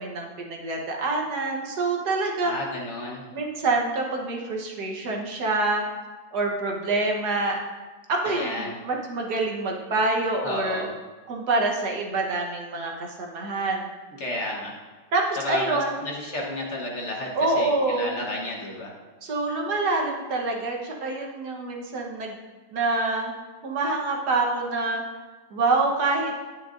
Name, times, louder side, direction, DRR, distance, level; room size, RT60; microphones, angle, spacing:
voice 1, 0.0-2.7 3.3-5.8 6.3-7.6 8.1-10.8 11.3-13.9 15.1-16.1 17.3-18.2 19.2-22.3 22.7-23.3 23.6-25.0 25.5-26.3, right 3 dB, 70° right, 0 dB, 1.7 m, -26 dB
voice 2, 2.4-3.2 8.2-8.8 10.4-10.9 14.2-14.7 15.4-17.3 17.5-18.9, left 2 dB, 45° left, -1 dB, 1.3 m, -32 dB
9.8 x 9.6 x 2.6 m, 1.3 s
omnidirectional pair, 1.8 m